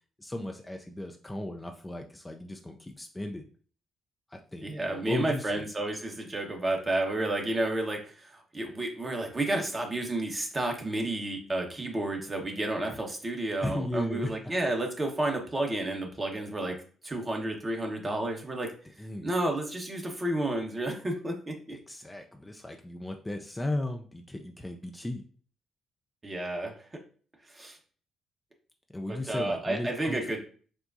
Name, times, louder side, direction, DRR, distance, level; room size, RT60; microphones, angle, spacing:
voice 1, 0.2-3.4 4.3-5.6 12.9-13.0 13.6-14.5 19.0-19.3 21.7-25.2 28.9-30.2, left 1 dB, 15° left, 3 dB, 0.5 m, -36 dB
voice 2, 4.6-18.7 19.2-21.8 26.2-27.0 27.5-27.8 29.1-30.4, right 1 dB, 30° right, 2 dB, 1.2 m, -31 dB
6.7 x 2.2 x 2.6 m, 0.42 s
hypercardioid pair, 45°, 0 cm